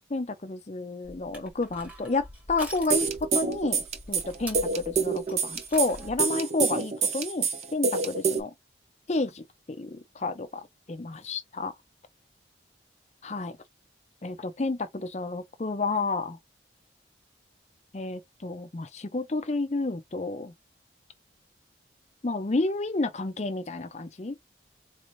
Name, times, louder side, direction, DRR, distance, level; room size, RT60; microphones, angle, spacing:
voice 1, 0.1-3.1 3.3-8.5 9.1-11.7 13.2-13.6 14.2-16.4 17.9-20.5 22.2-24.4, left 3 dB, 35° left, 0.5 m, -30 dB
Crushing, 1.0-6.3, equal, 10° right, 1.2 m, -45 dB
sound 1, 2.9-8.4, right 5 dB, 35° right, 0.6 m, -27 dB
4.1 x 2.6 x 3.1 m
head